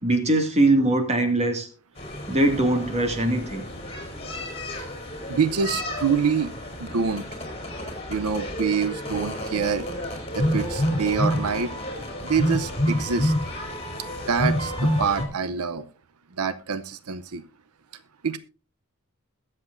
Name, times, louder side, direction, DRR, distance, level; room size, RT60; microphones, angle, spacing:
voice 1, 0.0-1.7 2.3-3.6, right 1 dB, 30° right, 5 dB, 2.1 m, -21 dB
sound 1, 2.0-15.3, equal, 25° left, 3.8 m, -29 dB
voice 2, 5.3-6.5 6.8-7.2 8.1-9.9 10.3-11.7 12.2-13.3 14.3-15.8 16.4-17.4 18.2-18.4, right 6 dB, 85° right, 13 dB, 0.7 m, -26 dB
21.5 x 7.6 x 2.6 m, 0.35 s
head